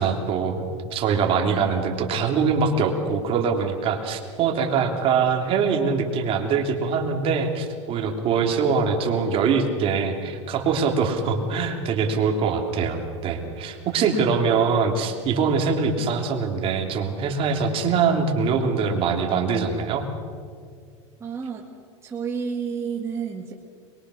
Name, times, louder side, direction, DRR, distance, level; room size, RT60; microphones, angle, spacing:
voice 1, 0.0-20.0, right 5 dB, 35° right, 3 dB, 3.1 m, -23 dB
voice 2, 21.2-21.6 22.0-23.5, right 6 dB, 15° right, 0 dB, 1.9 m, -30 dB
24.5 x 22.5 x 6.4 m, 2.1 s
supercardioid pair, 135°, 15 cm